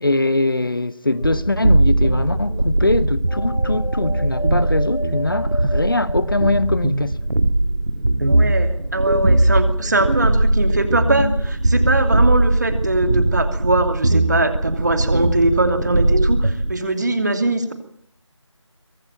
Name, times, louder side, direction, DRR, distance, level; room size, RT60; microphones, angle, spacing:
voice 1, 0.0-7.2, left 2 dB, 45° left, 0.9 m, -22 dB
sound 1, 1.1-1.8 3.3-7.1, left 1 dB, 85° left, 1.7 m, -33 dB
sound 2, 1.2-16.8, right 1 dB, 60° right, 1.7 m, -19 dB
voice 2, 8.2-17.7, right 2 dB, 35° right, 2.7 m, -21 dB
23.5 x 17.5 x 9.1 m
figure-of-eight pair, 165°, 16 cm